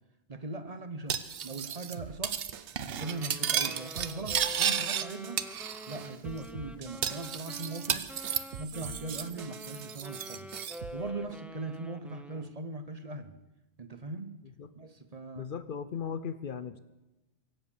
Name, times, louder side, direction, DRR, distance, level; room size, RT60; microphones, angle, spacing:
voice 1, 0.3-1.2 1.4-2.4 3.0-5.4 5.9-8.1 8.6-10.5 10.9-13.4 13.8-14.4 14.8-15.5, right 3 dB, 35° right, 10 dB, 0.9 m, -40 dB
Cutlery silverware, 1.1-2.0 2.2-2.5 2.8-5.1 5.4-6.1 6.4-6.5 7.0-9.3 9.6-10.8, right 8 dB, 65° right, 0.9 m, -33 dB
sound 1, 2.0-3.1 3.7-5.4 6.0-7.7 8.2-10.0 10.5-11.0, right 8 dB, 85° right, 1.1 m, -47 dB
Wind instrument woodwind instrument, 3.0-12.6, equal, ahead, 0.5 m, -47 dB
voice 2, 15.4-16.8, left 7 dB, 55° left, 13 dB, 0.8 m, -37 dB
23.5 x 7.9 x 7.0 m, 1.0 s
omnidirectional pair, 1.1 m